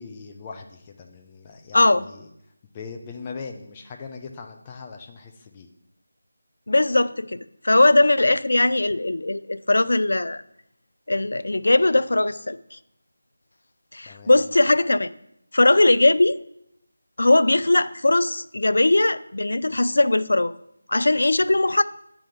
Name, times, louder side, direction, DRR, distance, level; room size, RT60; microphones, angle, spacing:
voice 1, 0.0-2.3 2.7-5.7 14.1-14.5, left 5 dB, 20° left, 3 dB, 0.7 m, -40 dB
voice 2, 1.7-2.0 6.7-7.4 7.6-10.4 11.1-12.6 13.9-15.1 15.5-16.4 17.2-20.5 20.9-21.8, left 2 dB, 65° left, 14 dB, 0.4 m, -19 dB
8.8 x 3.5 x 5.5 m, 0.76 s
figure-of-eight pair, 160°, 0 cm